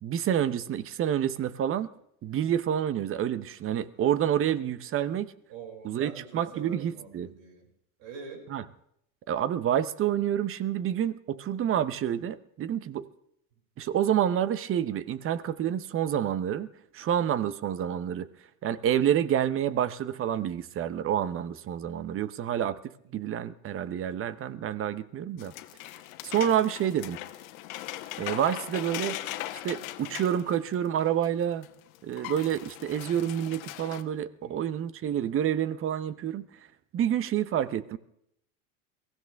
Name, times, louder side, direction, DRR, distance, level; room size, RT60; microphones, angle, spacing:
voice 1, 0.0-1.9 2.2-5.3 5.8-7.3 8.5-8.6 9.3-13.1 13.8-18.3 18.6-22.8 23.1-25.5 26.2-27.2 28.2-29.2 29.6-31.7 32.0-36.5 36.9-38.0, right 10 dB, 30° right, 0.9 m, -28 dB
voice 2, 5.5-7.7 8.0-8.5 23.2-23.3 34.4-34.6, right 5 dB, 65° right, 6.2 m, -45 dB
sound 1, 25.4-31.3 31.6-31.7 31.9-34.0, left 15 dB, 75° left, 1.4 m, -39 dB
22.5 x 16.0 x 3.5 m
supercardioid pair, 110°, 41 cm